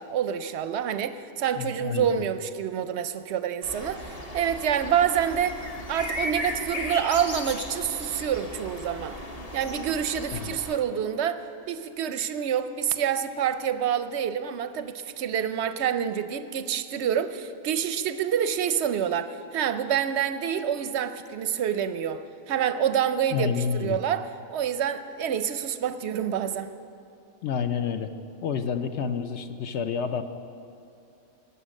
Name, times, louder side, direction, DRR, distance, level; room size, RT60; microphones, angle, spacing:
voice 1, 0.0-5.6 5.9-9.2 9.5-26.7, right 8 dB, 65° right, 11 dB, 0.7 m, -27 dB
voice 2, 1.6-2.2 10.3-10.5 23.3-24.0 27.4-28.1 28.4-30.2, left 6 dB, 60° left, 9 dB, 0.8 m, -29 dB
sound 1, 3.6-10.8, left 1 dB, 30° left, 1.0 m, -36 dB
18.0 x 7.0 x 6.3 m, 2.7 s
omnidirectional pair, 1.5 m